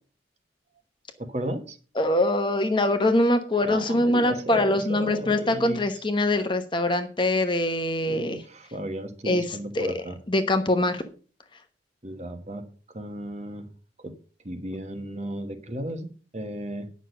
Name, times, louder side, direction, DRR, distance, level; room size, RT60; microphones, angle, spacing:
voice 1, 1.2-1.8 3.6-5.8 8.1-10.1 12.0-12.6 12.9-13.6 14.0-14.1 14.4-16.9, right 1 dB, 35° right, 7 dB, 1.4 m, -34 dB
voice 2, 1.9-8.4 9.2-11.0, left 1 dB, 25° left, 7 dB, 1.0 m, -23 dB
10.0 x 6.3 x 6.6 m, 0.38 s
head